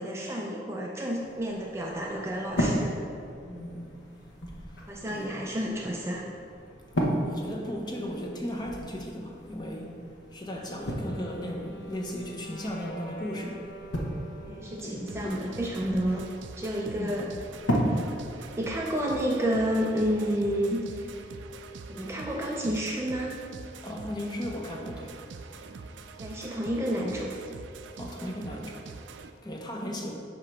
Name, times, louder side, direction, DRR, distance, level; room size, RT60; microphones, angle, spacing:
voice 1, 0.0-3.1 4.9-6.3 14.4-16.3 16.6-17.3 17.8-21.1 21.9-23.4 26.2-27.3, equal, 15° right, -1 dB, 0.4 m, -30 dB
sound 1, 1.2-19.2, equal, 80° left, 1.0 m, -35 dB
voice 2, 3.5-4.0 4.5-5.5 6.9-10.0 10.3-13.6 14.8-15.4 17.0-17.2 23.8-25.1 28.0-30.1, equal, 20° left, 0 dB, 0.7 m, -37 dB
Wind instrument woodwind instrument, 10.6-15.2, equal, 55° left, 0.8 m, -46 dB
sound 2, 15.1-29.3, right 4 dB, 80° right, 0.4 m, -44 dB
7.9 x 2.9 x 6.1 m, 2.4 s
head